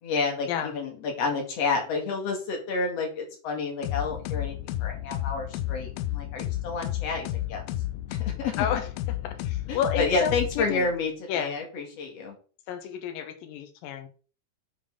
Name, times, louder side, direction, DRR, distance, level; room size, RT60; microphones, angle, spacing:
voice 1, 0.0-7.6 8.1-8.7 9.7-12.4, left 4 dB, 45° left, 1 dB, 2.6 m, -30 dB
sound 1, 3.8-11.0, left 14 dB, 90° left, 2.1 m, -32 dB
voice 2, 8.6-10.9 11.3-11.5 12.7-14.1, left 8 dB, 70° left, 8 dB, 2.5 m, -31 dB
7.1 x 7.0 x 3.7 m, 0.39 s
omnidirectional pair, 4.8 m